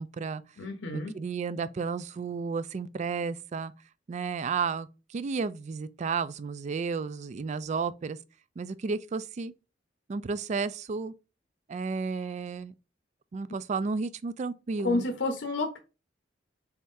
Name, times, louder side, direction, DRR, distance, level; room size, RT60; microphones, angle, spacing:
voice 1, 0.0-0.4 1.1-3.7 4.1-8.2 8.6-9.5 10.1-11.1 11.7-12.7 13.3-15.1, right 5 dB, 40° right, 0.3 m, -32 dB
voice 2, 0.6-1.1 14.8-15.8, left 2 dB, 80° left, 0.7 m, -30 dB
4.2 x 3.6 x 2.6 m
head